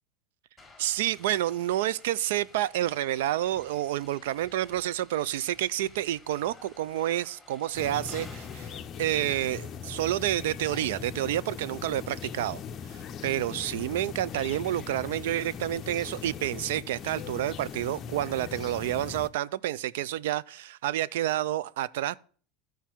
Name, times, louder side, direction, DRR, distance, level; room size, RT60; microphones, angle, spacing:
sound 1, 0.6-8.8, left 2 dB, 5° left, 1.5 m, -53 dB
voice 1, 0.8-8.7 9.0-12.6 12.9-22.2, right 13 dB, 80° right, 0.3 m, -29 dB
sound 2, 7.7-19.3, left 7 dB, 30° left, 0.5 m, -40 dB
13.5 x 4.6 x 4.4 m
supercardioid pair, 150°, 0 cm